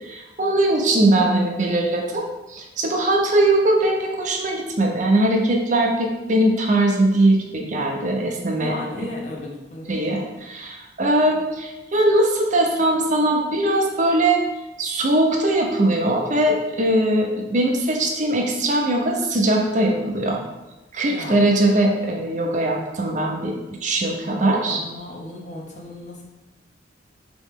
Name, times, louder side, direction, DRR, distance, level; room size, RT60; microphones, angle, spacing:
voice 1, 0.0-9.1 9.9-14.4 14.8-20.4 20.9-23.6 23.8-24.8, right 1 dB, 45° right, 0 dB, 0.6 m, -20 dB
voice 2, 8.6-10.0 21.1-21.5 24.7-26.2, left 2 dB, 40° left, -1 dB, 0.7 m, -34 dB
3.7 x 3.0 x 3.6 m, 1.0 s
head